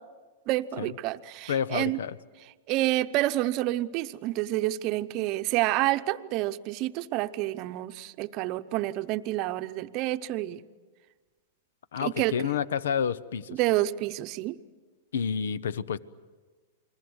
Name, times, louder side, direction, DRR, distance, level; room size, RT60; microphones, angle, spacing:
voice 1, 0.5-2.0 2.7-10.6 12.0-12.3 13.5-14.6, right 16 dB, 40° right, 10 dB, 0.8 m, -28 dB
voice 2, 1.5-2.2 11.9-13.6 15.1-16.0, left 7 dB, 85° left, 19 dB, 0.8 m, -29 dB
29.5 x 21.5 x 8.0 m, 1.4 s
hypercardioid pair, 135°, 0 cm